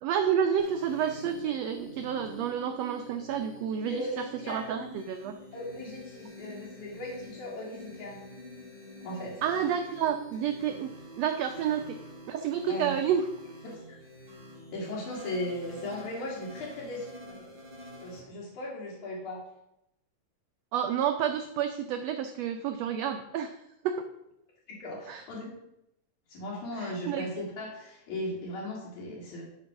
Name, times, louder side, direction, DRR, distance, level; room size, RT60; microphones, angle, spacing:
voice 1, 0.0-4.0 4.5-5.3 9.4-10.9 11.2-12.0 12.3-13.2 20.7-23.5 23.8-24.1 25.1-25.2 26.8-27.3, right 8 dB, 85° right, 6 dB, 1.4 m, -29 dB
sound 1, 0.6-18.2, equal, 35° right, 3.1 m, -47 dB
voice 2, 3.9-4.7 5.5-8.2 9.0-9.4 12.7-12.9 13.6-14.0 14.7-17.6 17.9-19.4 24.7-25.5 26.3-29.4, left 1 dB, 70° left, -6 dB, 3.3 m, -37 dB
11.0 x 4.6 x 5.9 m, 0.85 s
omnidirectional pair, 3.6 m